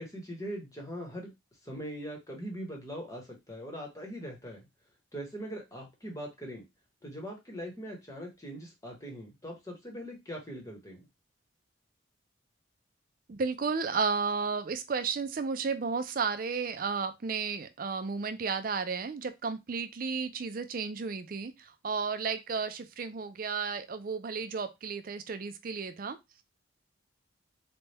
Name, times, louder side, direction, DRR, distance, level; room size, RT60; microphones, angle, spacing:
voice 1, 0.0-1.3 1.6-4.7 5.1-6.6 7.0-11.0, equal, 15° left, 1.0 m, -41 dB
voice 2, 13.3-26.4, right 5 dB, 45° right, 0.4 m, -33 dB
4.0 x 2.2 x 3.3 m
head